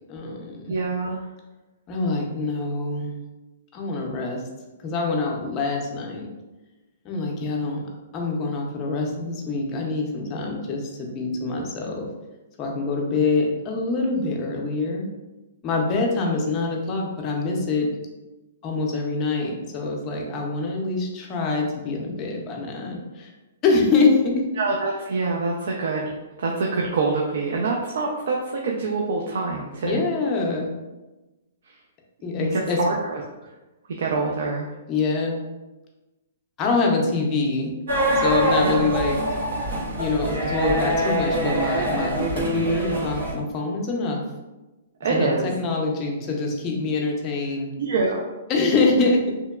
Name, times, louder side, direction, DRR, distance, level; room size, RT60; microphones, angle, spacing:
voice 1, 0.1-0.8 1.9-3.1 3.7-4.4 4.8-6.3 7.0-7.8 8.1-12.1 12.6-15.1 15.6-17.9 18.6-23.3 23.6-24.4 29.8-30.7 32.2-32.8 34.9-35.4 36.6-37.7 38.1-39.2 40.0-44.2 45.1-47.7 48.5-49.2, left 3 dB, 25° left, 0 dB, 0.5 m, -25 dB
voice 2, 0.7-1.2 24.6-30.0 32.4-33.2 34.0-34.7 38.6-38.9 45.0-45.5 47.8-48.3, right 3 dB, 70° right, -1 dB, 0.4 m, -25 dB
sound 1, 37.9-43.3, right 1 dB, 90° right, 1.4 m, -24 dB
2.8 x 2.2 x 2.2 m, 1.1 s
hypercardioid pair, 155°, 0 cm